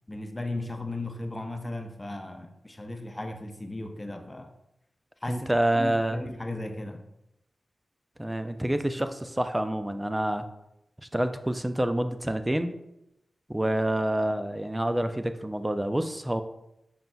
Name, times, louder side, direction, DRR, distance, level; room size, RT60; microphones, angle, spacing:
voice 1, 0.1-4.5 5.2-7.0, left 2 dB, 25° left, 5 dB, 0.6 m, -36 dB
voice 2, 5.3-6.2 8.2-10.4 11.1-12.7 13.5-16.4, right 1 dB, 15° right, 9 dB, 0.4 m, -27 dB
5.5 x 3.8 x 2.3 m, 0.86 s
cardioid pair, 45°, 0 cm